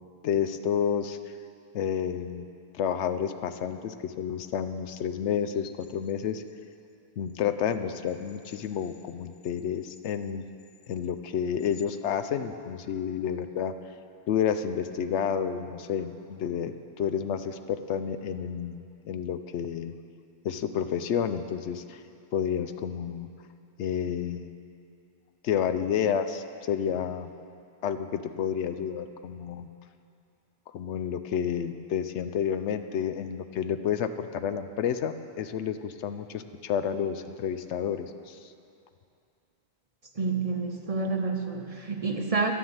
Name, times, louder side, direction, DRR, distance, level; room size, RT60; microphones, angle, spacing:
voice 1, 0.2-1.2 1.7-2.5 2.7-6.4 7.2-10.4 10.9-13.7 14.3-19.9 20.4-22.0 22.3-23.3 23.8-24.6 25.4-27.3 27.8-29.7 30.7-38.5, left 8 dB, 85° left, 10 dB, 0.9 m, -30 dB
voice 2, 40.2-42.5, right 4 dB, 40° right, 3 dB, 0.7 m, -29 dB
11.5 x 7.0 x 8.8 m, 2.5 s
omnidirectional pair, 1.1 m